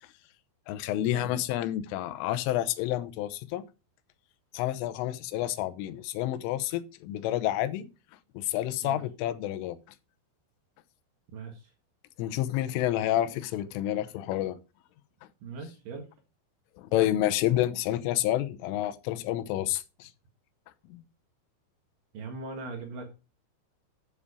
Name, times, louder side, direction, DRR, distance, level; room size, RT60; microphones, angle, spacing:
voice 1, 0.7-3.6 4.5-7.9 8.3-9.8 12.2-14.6 16.8-20.1 20.9-21.0, left 13 dB, 90° left, 3.3 m, -29 dB
voice 2, 11.3-11.7 15.4-16.1 22.1-23.3, right 4 dB, 60° right, 2.7 m, -40 dB
8.6 x 7.3 x 4.8 m
omnidirectional pair, 5.6 m